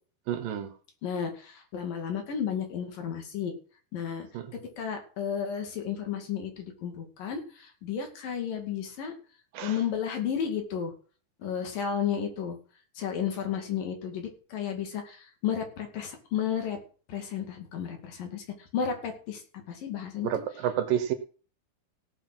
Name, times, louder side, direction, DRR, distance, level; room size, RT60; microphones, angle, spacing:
voice 1, 0.3-0.7 4.3-4.5 9.5-9.8 20.2-21.1, right 10 dB, 70° right, 9 dB, 2.6 m, -29 dB
voice 2, 1.0-3.5 3.9-4.3 4.8-9.1 9.6-10.9 11.4-12.6 13.0-16.8 17.1-20.3, left 8 dB, 65° left, 4 dB, 3.8 m, -33 dB
17.0 x 6.5 x 6.1 m, 0.40 s
omnidirectional pair, 4.5 m